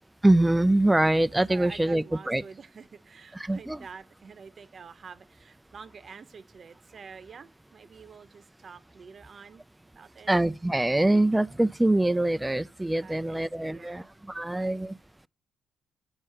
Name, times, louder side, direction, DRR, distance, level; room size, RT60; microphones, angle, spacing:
voice 1, 0.2-2.4 3.4-3.8 10.3-15.0, right 1 dB, 10° right, 0.3 m, -24 dB
voice 2, 1.5-9.6 9.9-10.3 13.0-14.1 14.5-14.8, right 5 dB, 45° right, 0.8 m, -48 dB
8.8 x 4.8 x 5.6 m
cardioid pair, 90°, 0 cm